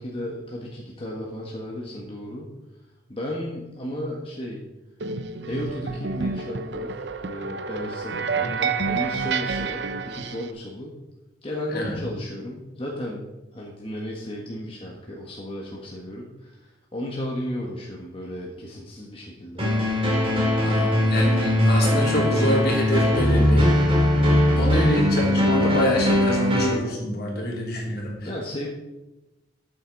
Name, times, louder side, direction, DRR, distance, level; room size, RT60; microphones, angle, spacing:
voice 1, 0.0-2.5 3.1-4.7 5.4-11.0 11.4-13.2 13.5-19.6 24.6-24.8 28.2-28.7, left 1 dB, 30° left, -3 dB, 1.6 m, -34 dB
sound 1, 5.0-10.5, right 5 dB, 75° right, 0.7 m, -29 dB
sound 2, 19.6-26.7, left 1 dB, 30° right, 2.7 m, -20 dB
voice 2, 20.5-23.7 24.6-28.3, equal, 60° left, -1 dB, 3.1 m, -25 dB
13.5 x 8.2 x 4.1 m, 1.0 s
head